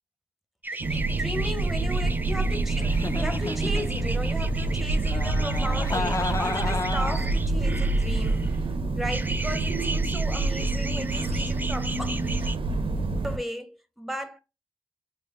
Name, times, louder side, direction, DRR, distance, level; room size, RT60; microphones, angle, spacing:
sound 1, 0.6-8.6 9.1-12.6, right 2 dB, 20° right, 0.3 m, -37 dB
sound 2, 0.8-13.4, right 3 dB, 80° right, 0.5 m, -27 dB
voice 1, 0.9-8.5 9.0-12.2 13.2-14.4, equal, ahead, 0.7 m, -36 dB
Giggle, 2.8-4.3 5.0-7.4, left 3 dB, 35° left, 0.6 m, -32 dB
3.3 x 2.3 x 3.5 m
cardioid pair, 40°, 9 cm